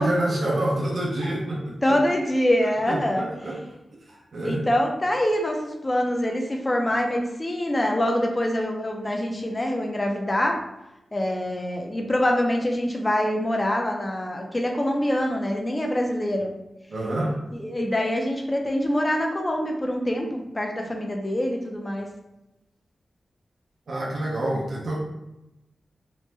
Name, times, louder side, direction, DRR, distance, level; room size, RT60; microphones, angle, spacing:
voice 1, 0.0-2.0 2.9-3.6 4.1-4.6 16.9-17.4 23.9-25.0, right 1 dB, 65° right, -3 dB, 0.6 m, -27 dB
voice 2, 1.8-3.3 4.4-10.6 11.1-16.5 17.5-22.1, left 1 dB, 20° left, 2 dB, 0.4 m, -25 dB
3.0 x 2.1 x 3.2 m, 0.94 s
wide cardioid pair, 115°, 0 cm